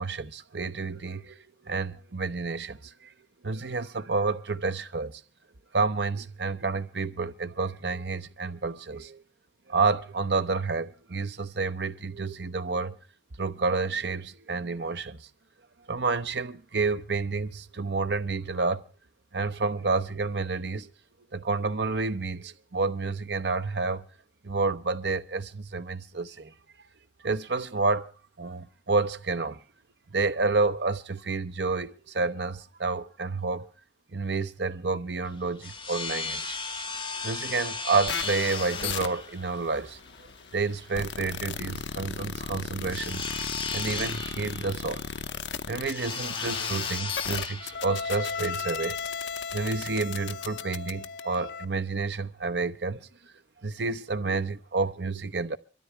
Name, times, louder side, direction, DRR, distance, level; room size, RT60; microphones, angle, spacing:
voice 1, 0.0-1.4 1.6-2.9 3.4-5.2 5.7-9.2 9.7-13.0 13.4-15.3 15.9-18.8 19.3-20.9 21.3-24.1 24.4-26.5 27.2-28.1 28.4-29.6 30.1-33.7 34.1-36.6 37.2-40.0 40.5-43.3 43.7-45.0 45.7-49.0 49.5-53.0 53.6-55.6, right 3 dB, 70° right, 0.9 m, -29 dB
sound 1, 35.2-49.8, left 4 dB, 30° left, 2.1 m, -36 dB
sound 2, 38.1-51.7, left 6 dB, 85° left, 0.8 m, -36 dB
25.5 x 13.5 x 3.3 m
head